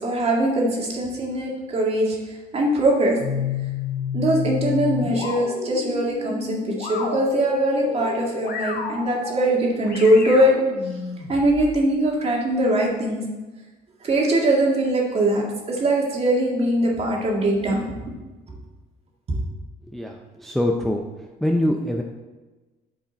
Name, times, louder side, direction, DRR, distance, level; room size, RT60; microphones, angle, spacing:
voice 1, 0.0-3.2 4.1-10.5 11.3-13.2 14.0-18.0 19.3-19.4, right 1 dB, 35° right, -2 dB, 2.0 m, -21 dB
sound 1, 3.2-11.8, left 6 dB, 65° left, 1.4 m, -30 dB
voice 2, 19.9-21.1 21.4-22.0, left 1 dB, ahead, 1 dB, 0.5 m, -24 dB
8.9 x 5.0 x 4.1 m, 1.2 s
cardioid pair, 110°, 17 cm